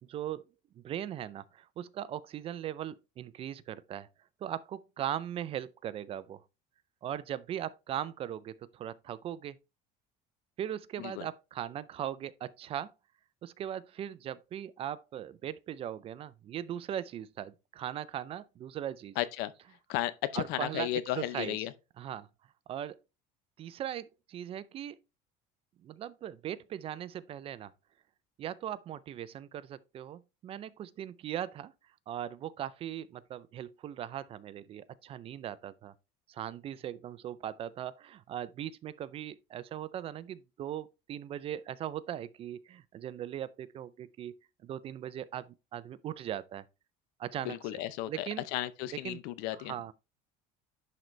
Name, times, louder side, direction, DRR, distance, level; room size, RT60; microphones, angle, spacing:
voice 1, 0.1-0.4 0.8-4.1 4.4-6.4 7.0-9.6 10.6-12.9 13.4-19.2 20.3-21.7 22.0-22.3 22.7-23.0 23.6-25.0 25.8-27.7 28.4-31.7 32.1-35.9 36.3-44.3 44.6-46.6 47.2-47.7 48.1-48.5 48.9-49.2 49.5-49.9, right 10 dB, 35° right, 0.4 m, -39 dB
voice 2, 19.2-19.5 19.9-21.7 47.4-49.7, left 14 dB, 75° left, 0.7 m, -34 dB
10.5 x 4.0 x 3.2 m
cardioid pair, 145°, 17 cm